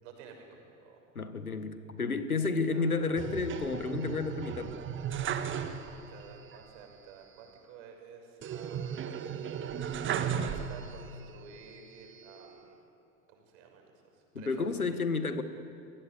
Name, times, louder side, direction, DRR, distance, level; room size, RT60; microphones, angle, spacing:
voice 1, 0.0-1.0 2.7-3.2 5.8-9.0 10.0-12.8 13.3-13.9 14.4-14.7, right 5 dB, 55° right, 3 dB, 6.6 m, -52 dB
voice 2, 1.2-4.8 14.4-15.4, left 4 dB, 85° left, 10 dB, 1.8 m, -31 dB
sound 1, 3.2-6.2 6.5-6.6 8.4-11.2 11.7-12.5, right 8 dB, 30° right, 1.7 m, -35 dB
29.5 x 22.0 x 8.1 m, 2.6 s
figure-of-eight pair, 80°, 42 cm